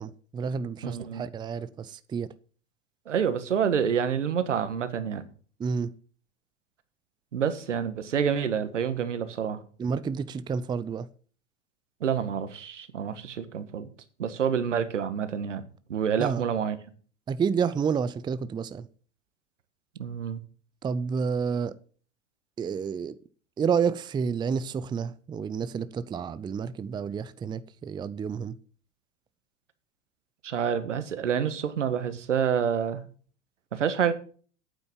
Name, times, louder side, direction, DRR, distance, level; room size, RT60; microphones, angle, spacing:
voice 1, 0.0-2.3 5.6-5.9 9.8-11.1 16.2-16.4 17.3-18.9 20.8-21.8 22.6-23.2 23.6-28.5, right 6 dB, 15° right, 0.5 m, -30 dB
voice 2, 0.8-1.3 3.1-5.2 7.3-9.6 12.0-13.9 14.2-15.6 15.9-16.8 20.0-20.4 30.4-33.0 33.7-34.1, right 7 dB, 85° right, 1.5 m, -28 dB
9.0 x 7.9 x 7.3 m
hypercardioid pair, 100°, 36 cm